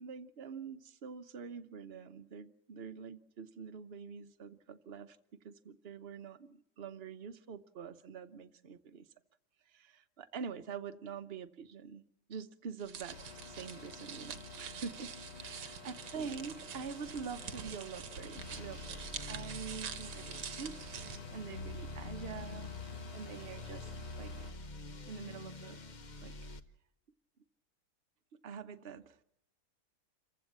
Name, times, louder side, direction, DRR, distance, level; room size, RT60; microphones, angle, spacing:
voice 1, 0.0-5.2 5.4-9.0 9.7-12.0 12.3-13.2 13.5-23.9 24.2-24.3 25.1-25.8 26.2-26.5 28.4-29.2, right 6 dB, 45° right, 10 dB, 1.0 m, -46 dB
sound 1, 12.8-21.2, right 8 dB, 80° right, 1.7 m, -46 dB
sound 2, 13.1-24.5, left 4 dB, 85° left, 3.6 m, -51 dB
sound 3, 18.3-26.6, left 3 dB, 35° left, 0.8 m, -46 dB
27.5 x 15.5 x 7.4 m, 0.80 s
omnidirectional pair, 1.8 m